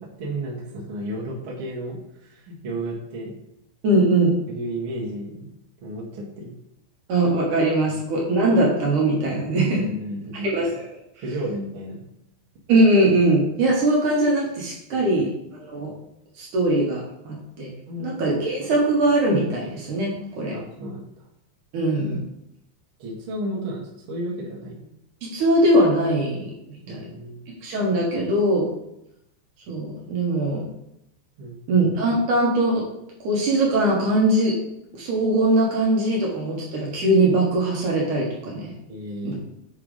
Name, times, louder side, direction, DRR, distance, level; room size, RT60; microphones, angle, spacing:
voice 1, 0.2-3.3 4.5-5.5 5.8-6.5 7.9-8.0 9.7-10.5 11.2-12.0 14.9-15.3 17.9-18.3 20.5-21.0 23.0-24.9 26.9-27.4 31.4-31.9 38.9-39.3, right 1 dB, 80° right, -5 dB, 1.2 m, -33 dB
voice 2, 3.8-4.4 7.1-9.8 10.4-10.9 12.7-15.3 15.6-15.9 16.4-17.7 18.0-20.5 21.7-22.2 25.2-26.5 26.9-27.0 27.6-28.7 29.7-30.6 31.7-32.9 33.2-34.6 34.9-38.7 39.2-39.3, right 1 dB, 65° right, -4 dB, 2.1 m, -21 dB
7.4 x 4.7 x 5.1 m, 0.83 s
omnidirectional pair, 5.5 m